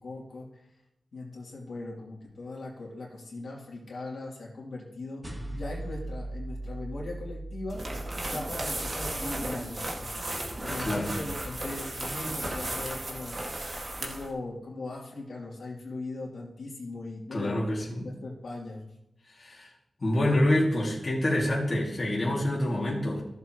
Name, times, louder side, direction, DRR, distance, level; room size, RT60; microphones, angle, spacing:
voice 1, 0.0-0.5 1.1-7.8 8.2-13.4 14.0-18.8, left 2 dB, 75° left, -3 dB, 2.8 m, -39 dB
sound 1, 5.2-9.9, right 1 dB, 25° right, 1.8 m, -39 dB
sound 2, 7.7-14.3, right 1 dB, 45° right, 1.8 m, -35 dB
voice 2, 10.8-11.1 17.3-18.1 19.4-19.7 20.0-23.2, left 1 dB, 35° left, -4 dB, 2.2 m, -27 dB
15.0 x 7.3 x 3.0 m, 0.85 s
wide cardioid pair, 120°, 0 cm